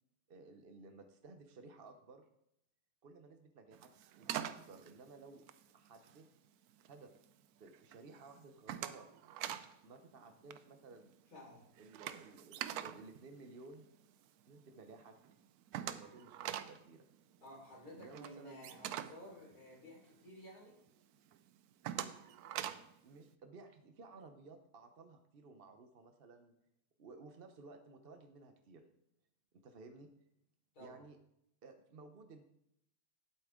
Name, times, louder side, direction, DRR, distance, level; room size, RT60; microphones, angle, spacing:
voice 1, 0.3-2.2 3.0-3.9 4.2-5.4 5.7-6.3 6.9-7.1 7.6-9.1 9.8-11.1 11.8-13.9 14.5-15.2 15.8-17.0 17.9-18.7 23.0-26.5 27.0-28.8 29.5-30.1 30.8-31.2 31.6-32.4, right 3 dB, 45° right, 6 dB, 0.8 m, -56 dB
sound 1, 3.7-6.3 6.7-7.2 7.6-8.0 8.3-9.7 10.0-10.2 10.4-14.2 14.6-14.7 15.0-15.1 15.2-20.3 20.7-20.8 21.3-23.0, right 11 dB, 75° right, 1.1 m, -44 dB
voice 2, 11.3-11.7 17.4-20.7 30.7-31.0, equal, 75° left, -4 dB, 4.8 m, -54 dB
11.0 x 8.4 x 3.7 m, 0.78 s
omnidirectional pair, 1.7 m